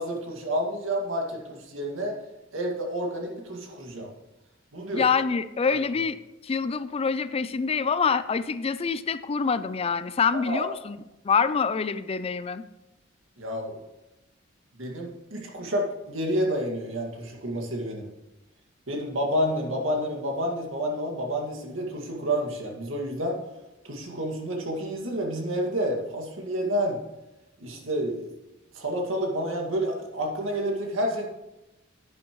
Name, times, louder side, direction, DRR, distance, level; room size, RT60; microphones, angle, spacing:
voice 1, 0.0-2.1 2.5-4.1 4.7-5.0 10.5-10.7 13.4-13.8 14.8-18.1 18.9-23.4 23.8-27.0 27.6-28.3 28.7-31.3, equal, 90° right, 0 dB, 2.1 m, -29 dB
voice 2, 4.9-6.2 6.4-11.0 11.2-12.6, left 5 dB, 30° left, 14 dB, 0.4 m, -26 dB
11.0 x 9.6 x 3.1 m, 0.98 s
head